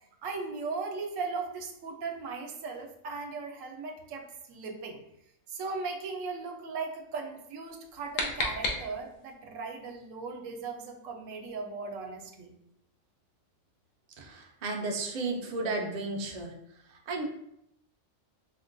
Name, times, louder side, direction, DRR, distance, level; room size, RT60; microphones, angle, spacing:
voice 1, 0.2-5.0 5.5-12.5, right 4 dB, 80° right, 3 dB, 1.0 m, -38 dB
sound 1, 7.7-9.3, left 2 dB, 90° left, 1.1 m, -34 dB
voice 2, 14.6-16.5 17.1-17.2, right 3 dB, 55° right, 0 dB, 0.4 m, -32 dB
4.4 x 2.2 x 2.5 m, 0.77 s
omnidirectional pair, 1.3 m